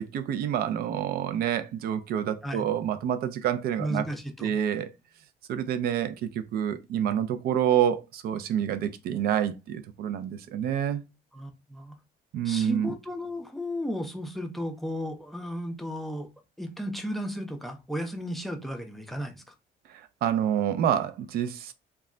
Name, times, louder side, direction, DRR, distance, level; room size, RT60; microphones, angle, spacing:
voice 1, 0.0-4.0 4.4-4.9 5.5-11.0 12.3-12.9 20.2-21.7, right 9 dB, 65° right, 0.4 m, -27 dB
voice 2, 3.8-4.6 11.3-12.0 12.4-16.3 16.6-19.3, equal, ahead, 0.5 m, -34 dB
2.2 x 2.0 x 3.6 m
cardioid pair, 110°, 17 cm